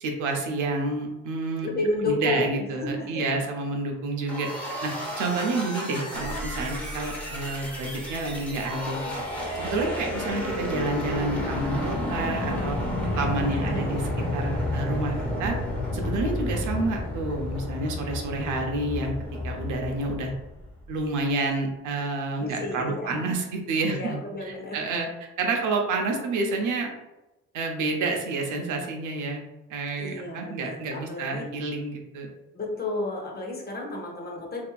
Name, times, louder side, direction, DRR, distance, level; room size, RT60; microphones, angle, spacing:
voice 1, 0.0-1.7 2.1-4.5 4.8-4.9 5.2-9.0 9.6-12.8 13.2-14.0 14.3-15.1 15.4-15.6 15.9-19.1 19.4-20.3 20.9-24.2 24.5-25.1 25.4-26.9 27.5-29.4 29.7-32.3, right 3 dB, 85° right, 2 dB, 0.6 m, -29 dB
voice 2, 1.6-2.7 3.0-3.2 9.8-10.0 13.6-14.5 15.0-15.4 22.4-23.2 23.8-24.9 30.0-31.5 32.5-34.6, left 2 dB, 30° left, 0 dB, 0.7 m, -32 dB
sound 1, 4.3-20.9, left 1 dB, 5° left, 0.9 m, -31 dB
sound 2, 6.1-17.0, equal, 25° right, 0.6 m, -40 dB
2.7 x 2.5 x 2.3 m, 0.99 s
cardioid pair, 90°, 30 cm